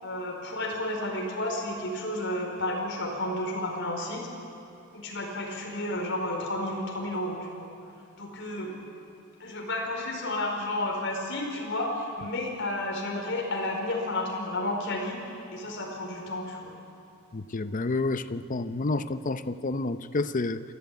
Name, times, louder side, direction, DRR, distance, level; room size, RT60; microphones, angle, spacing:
voice 1, 0.0-4.3 4.9-7.7 8.2-8.7 9.4-16.8, left 1 dB, 60° left, 0 dB, 4.8 m, -32 dB
voice 2, 17.3-20.6, left 2 dB, 40° left, 12 dB, 0.7 m, -29 dB
27.0 x 13.0 x 9.5 m, 2.9 s
head